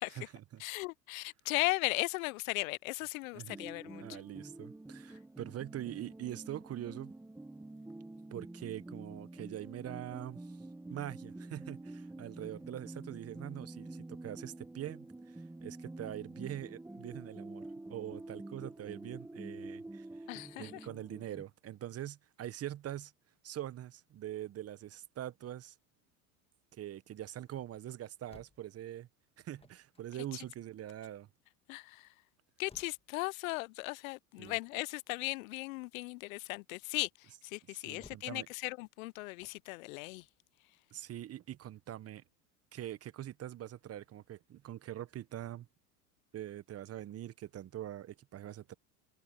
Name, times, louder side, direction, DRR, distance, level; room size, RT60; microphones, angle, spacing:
voice 1, 0.1-0.6 3.3-3.5 4.0-7.1 8.3-10.6 10.9-20.2 20.6-23.1 23.4-25.7 26.7-29.1 29.4-31.3 34.4-34.6 37.7-38.5 40.9-42.2 42.7-45.7 46.3-48.8, right 12 dB, 30° right, 1.1 m, -43 dB
voice 2, 0.6-4.2 20.3-20.9 31.7-32.1 32.6-40.2, left 23 dB, 60° left, 0.5 m, -37 dB
sound 1, 3.5-21.4, right 2 dB, 5° right, 0.8 m, -48 dB
sound 2, 26.0-41.5, left 4 dB, 10° left, 2.0 m, -66 dB
hypercardioid pair, 90°, 47 cm